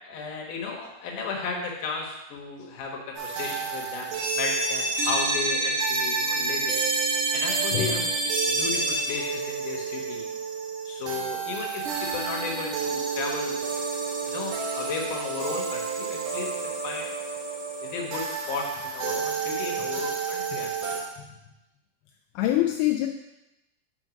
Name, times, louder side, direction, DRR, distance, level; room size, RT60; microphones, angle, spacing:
voice 1, 0.0-6.8 7.3-8.1 8.5-10.2 10.9-13.6 14.2-17.1 17.8-21.0, left 4 dB, 65° left, -1 dB, 2.6 m, -34 dB
sound 1, 3.2-21.0, right 4 dB, 65° right, 2.5 m, -29 dB
voice 2, 22.4-23.1, left 14 dB, 85° left, 2 dB, 2.4 m, -25 dB
8.9 x 3.8 x 5.1 m, 0.94 s
omnidirectional pair, 4.4 m